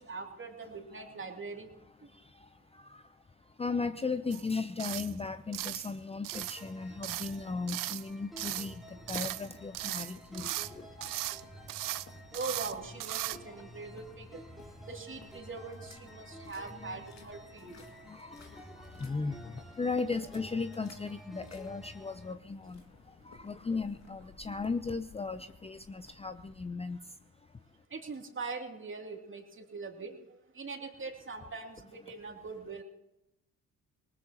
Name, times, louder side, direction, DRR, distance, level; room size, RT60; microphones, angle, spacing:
voice 1, 0.0-1.7 12.3-14.4 14.9-17.8 27.9-32.8, right 4 dB, 35° right, 2 dB, 2.8 m, -42 dB
voice 2, 2.1-12.0 14.5-14.8 16.2-27.6, left 4 dB, 15° left, 11 dB, 0.6 m, -38 dB
sound 1, 4.3-4.5 4.8-5.1 5.5-5.9 6.2-6.6 7.0-7.4 7.7-8.1 8.4-8.7 9.1-9.5 9.7-10.7 11.0-11.4 11.7-12.1 12.3-12.7 13.0-13.4, right 16 dB, 60° right, 0.7 m, -37 dB
sound 2, 6.3-22.3, equal, ahead, 2.9 m, -52 dB
sound 3, 8.8-26.7, left 4 dB, 45° left, 2.4 m, -58 dB
20.0 x 19.5 x 3.0 m, 0.89 s
hypercardioid pair, 55°, 36 cm